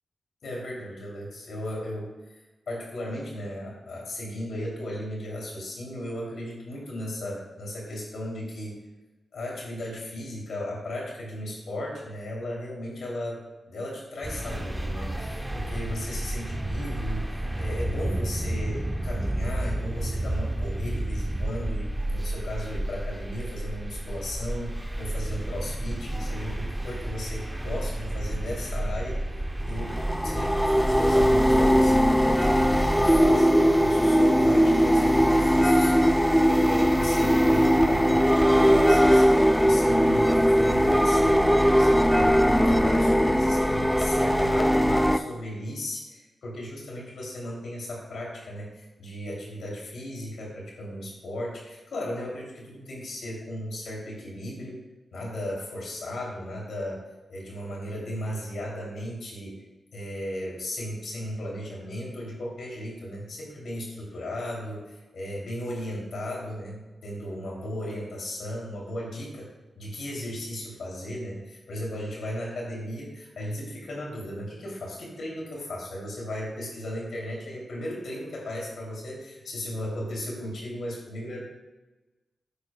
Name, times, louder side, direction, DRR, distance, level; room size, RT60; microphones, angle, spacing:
voice 1, 0.4-2.1 2.7-8.8 9.3-13.4 13.7-29.2 29.6-54.8 55.1-57.0 57.3-59.6 59.9-69.5 69.7-81.4, left 1 dB, 80° left, -3 dB, 2.9 m, -36 dB
sound 1, 14.2-33.3, right 1 dB, 15° right, 0.8 m, -31 dB
sound 2, 29.8-45.2, equal, ahead, 0.4 m, -20 dB
9.8 x 8.5 x 2.3 m, 1.1 s
cardioid pair, 60°, 0 cm